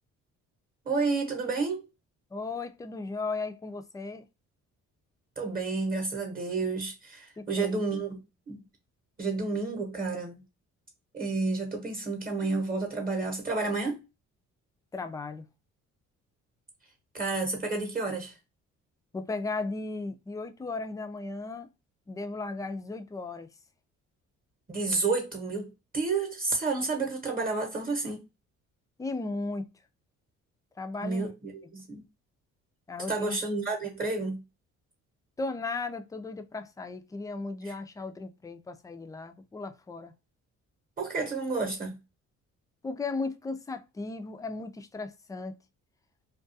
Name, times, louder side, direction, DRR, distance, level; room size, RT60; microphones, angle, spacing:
voice 1, 0.8-1.9 5.4-8.2 8.5-8.6 9.2-10.4 11.1-14.0 17.1-18.3 24.7-28.2 31.0-32.0 33.1-34.4 37.6-37.7 41.0-41.9, right 3 dB, 30° right, 0.9 m, -30 dB
voice 2, 2.3-4.3 7.4-7.9 14.9-15.5 19.1-21.7 22.1-23.5 29.0-29.7 30.8-31.3 31.6-31.7 32.9-33.4 35.4-40.1 42.8-45.6, left 3 dB, 10° left, 0.3 m, -36 dB
2.3 x 2.2 x 2.6 m
cardioid pair, 90°, 30 cm